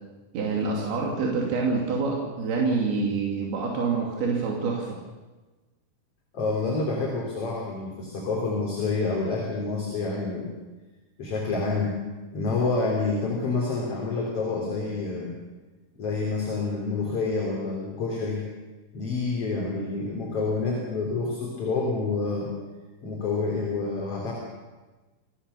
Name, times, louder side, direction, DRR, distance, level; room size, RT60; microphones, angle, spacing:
voice 1, 0.3-4.9, right 4 dB, 85° right, -1 dB, 4.5 m, -26 dB
voice 2, 6.3-10.5 11.2-12.0 12.3-15.3 15.9-18.5 18.9-22.5 23.0-24.3, left 3 dB, 40° left, -2 dB, 4.2 m, -28 dB
27.5 x 17.5 x 7.0 m, 1.2 s
omnidirectional pair, 4.3 m